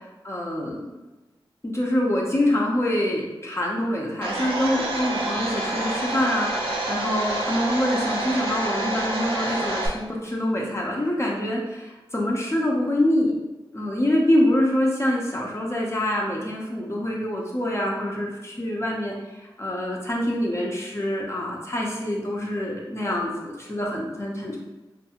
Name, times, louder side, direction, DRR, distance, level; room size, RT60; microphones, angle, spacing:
voice 1, 0.2-0.9 1.6-13.3 13.7-24.6, left 1 dB, 30° left, -2 dB, 0.6 m, -25 dB
Domestic sounds home sounds, 4.2-9.9, right 2 dB, 80° right, 0.5 m, -28 dB
2.6 x 2.3 x 2.8 m, 1.1 s
cardioid pair, 40°, 9 cm